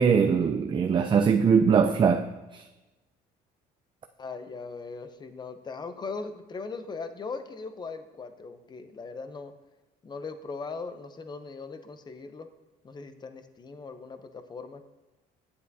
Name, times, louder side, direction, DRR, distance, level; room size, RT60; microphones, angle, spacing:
voice 1, 0.0-2.3 2.5-2.6, right 6 dB, 30° right, 0.4 m, -21 dB
voice 2, 4.2-9.5 10.0-12.5 12.8-14.8, left 4 dB, 25° left, 0.6 m, -39 dB
9.5 x 8.1 x 2.7 m
cardioid pair, 110°, 17 cm